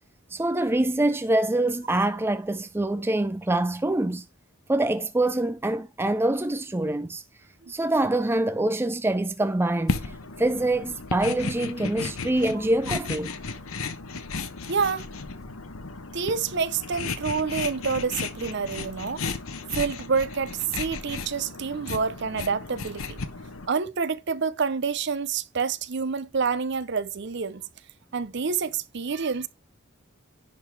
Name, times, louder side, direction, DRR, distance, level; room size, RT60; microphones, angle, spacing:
voice 1, 0.3-4.2 4.7-7.2 7.7-13.4, right 1 dB, 10° right, 0.4 m, -25 dB
sound 1, 9.9-23.7, left 4 dB, 80° left, 1.0 m, -34 dB
voice 2, 14.7-15.1 16.1-19.2 19.7-23.2 23.7-27.6 28.1-29.5, right 5 dB, 55° right, 0.6 m, -28 dB
10.5 x 3.8 x 4.6 m
head